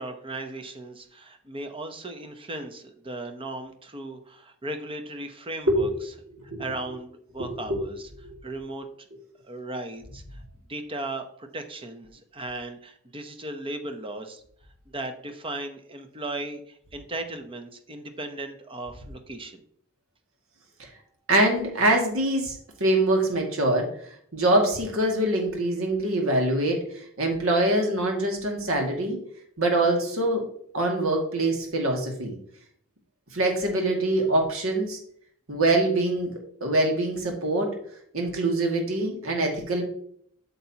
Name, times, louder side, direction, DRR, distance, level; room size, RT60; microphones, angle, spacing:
voice 1, 0.0-5.9 6.6-8.1 8.4-9.1 9.4-10.4 10.7-14.4 14.9-19.6, right 2 dB, 25° right, 7 dB, 0.8 m, -36 dB
voice 2, 21.3-23.9 24.3-26.8 27.2-29.2 29.6-30.4 30.7-32.3 33.3-35.0 35.5-36.3 36.6-37.7 38.1-39.8, right 1 dB, 70° right, 1 dB, 2.1 m, -24 dB
8.5 x 6.8 x 2.9 m, 0.63 s
head